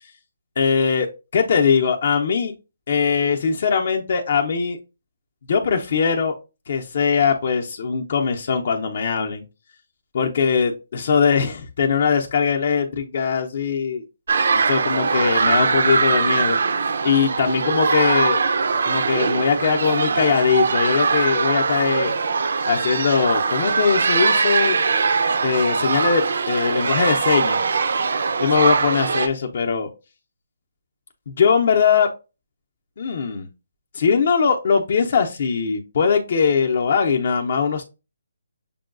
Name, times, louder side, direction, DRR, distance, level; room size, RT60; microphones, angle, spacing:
voice 1, 0.6-1.1 1.3-2.5 2.9-4.8 5.5-6.3 6.7-9.4 10.1-14.0 14.5-18.4 18.8-22.1 22.7-24.8 25.4-27.6 28.4-29.9 31.3-32.1 33.0-33.5 33.9-37.8, left 6 dB, 45° left, 2 dB, 0.6 m, -21 dB
sound 1, 14.3-29.3, right 4 dB, 60° right, 0.5 m, -21 dB
6.7 x 2.3 x 2.4 m, 0.28 s
hypercardioid pair, 170°, 0 cm